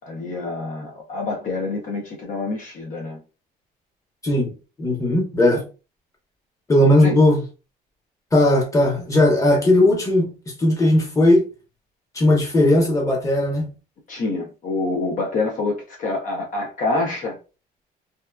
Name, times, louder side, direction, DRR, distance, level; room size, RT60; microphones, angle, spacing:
voice 1, 0.1-3.2 7.0-7.2 14.1-17.4, left 3 dB, 50° left, 0.7 m, -26 dB
voice 2, 4.8-5.6 6.7-7.4 8.3-10.3 10.6-11.4 12.1-13.7, left 1 dB, 20° left, 1.0 m, -17 dB
2.7 x 2.3 x 2.3 m
cardioid pair, 110°, 17 cm